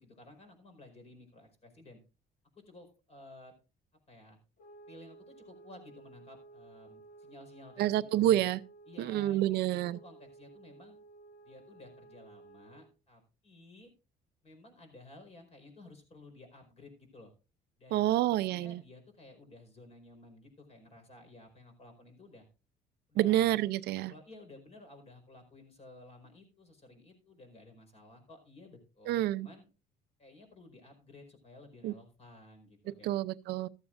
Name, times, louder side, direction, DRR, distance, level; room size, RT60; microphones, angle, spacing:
voice 1, 0.0-2.0 2.5-3.5 4.1-4.4 4.9-8.5 8.8-11.0 11.4-13.9 14.4-17.3 17.8-22.5 23.1-23.6 24.1-29.6 30.2-33.2, left 2 dB, 40° left, 5.0 m, -54 dB
sound 1, 4.6-12.9, right 3 dB, 55° left, 1.3 m, -55 dB
voice 2, 7.8-8.6 9.0-10.0 17.9-18.8 23.2-24.1 29.1-29.5 31.8-31.9 33.0-33.7, right 13 dB, 75° right, 0.5 m, -28 dB
14.5 x 13.0 x 2.5 m
cardioid pair, 110°, 17 cm